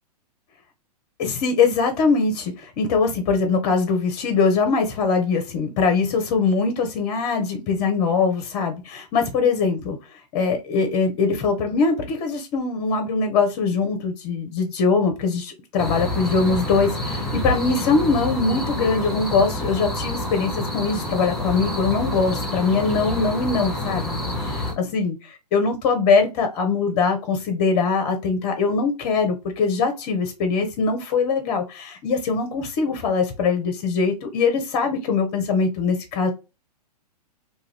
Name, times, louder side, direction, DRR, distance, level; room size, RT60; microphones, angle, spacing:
voice 1, 1.2-10.0 10.3-36.3, left 4 dB, 35° left, 0.7 m, -22 dB
sound 1, 15.8-24.7, left 1 dB, ahead, 0.9 m, -28 dB
2.7 x 2.4 x 3.2 m
figure-of-eight pair, 110°, 21 cm